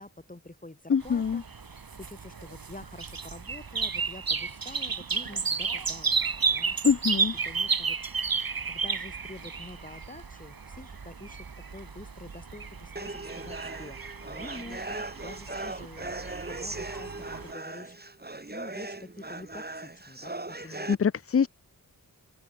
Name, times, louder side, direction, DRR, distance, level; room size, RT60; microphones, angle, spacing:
voice 1, 0.0-6.8 7.4-8.0 8.7-11.4 11.7-17.1 17.4-18.0 18.5-20.9, left 2 dB, 20° left, 7.6 m, -47 dB
voice 2, 0.9-1.4 6.8-7.3 20.9-21.5, left 6 dB, 40° left, 0.6 m, -24 dB
sound 1, 1.0-17.5, right 5 dB, 65° right, 5.4 m, -33 dB
sound 2, 13.0-20.9, right 2 dB, 25° right, 3.9 m, -39 dB
open air
cardioid pair, 60°, 37 cm